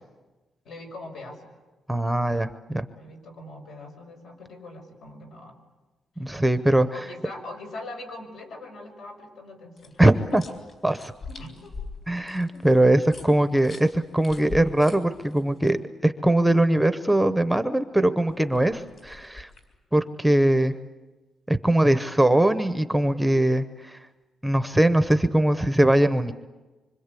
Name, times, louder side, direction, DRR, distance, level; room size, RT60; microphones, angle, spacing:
voice 1, 0.6-1.4 3.0-5.5 6.9-10.4 11.3-11.7 12.5-13.0, left 2 dB, 75° left, 3 dB, 5.8 m, -42 dB
voice 2, 1.9-2.9 6.2-6.9 10.0-10.4 10.8-11.1 12.1-19.5 19.9-20.7 21.5-24.0 24.4-26.3, right 1 dB, 5° right, 10 dB, 0.8 m, -21 dB
sound 1, 9.8-15.7 18.3-19.8, left 3 dB, 45° left, 4.1 m, -43 dB
26.0 x 25.0 x 8.4 m, 1.2 s
wide cardioid pair, 165°, 0 cm